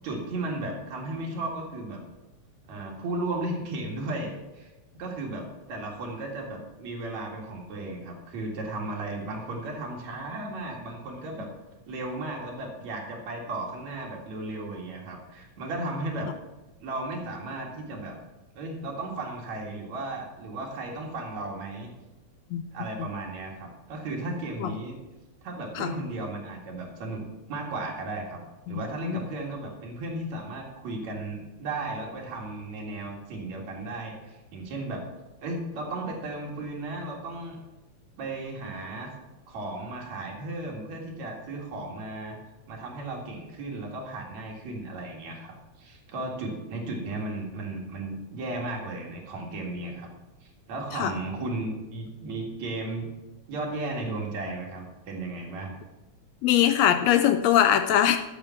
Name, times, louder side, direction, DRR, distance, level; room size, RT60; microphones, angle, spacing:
voice 1, 0.0-2.0 2.7-11.5 11.9-16.3 16.8-18.2 18.5-21.9 22.7-25.0 25.4-27.2 27.5-28.4 28.7-35.0 35.4-37.6 38.2-39.1 39.5-42.4 42.7-50.1 50.4-53.1 53.5-55.8, right 2 dB, 70° right, -1 dB, 3.3 m, -35 dB
voice 2, 28.7-29.2 50.9-51.1 56.4-58.2, left 10 dB, 75° left, 9 dB, 1.7 m, -22 dB
12.0 x 7.4 x 5.8 m, 1.1 s
omnidirectional pair, 3.3 m